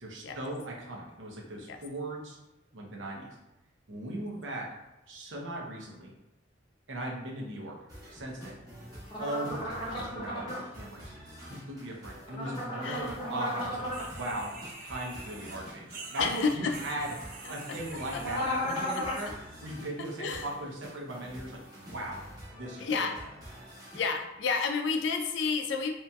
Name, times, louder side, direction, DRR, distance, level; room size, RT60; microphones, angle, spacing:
voice 1, 0.0-2.4 2.7-3.4 3.9-4.8 5.1-6.1 6.9-7.8 8.1-8.6 9.2-11.1 11.4-14.5 14.8-17.1 17.5-19.4 19.6-22.2 22.5-23.1, right 1 dB, 85° right, -1 dB, 0.7 m, -38 dB
sound 1, 7.9-24.1, equal, 20° right, 0.9 m, -48 dB
sound 2, 9.1-10.6 12.3-14.1 18.2-19.2, left 1 dB, 25° left, 0.7 m, -34 dB
voice 2, 12.8-13.2 16.2-16.7 17.4-17.5 18.1-18.2 18.6-19.0 20.2-20.5 22.8-23.2 23.9-25.9, left 5 dB, 70° left, 5 dB, 0.4 m, -30 dB
sound 3, 13.9-19.7 20.0-20.5 21.3-21.4 21.9-22.0, right 3 dB, 50° right, 0.4 m, -47 dB
2.9 x 2.7 x 2.2 m, 0.97 s
head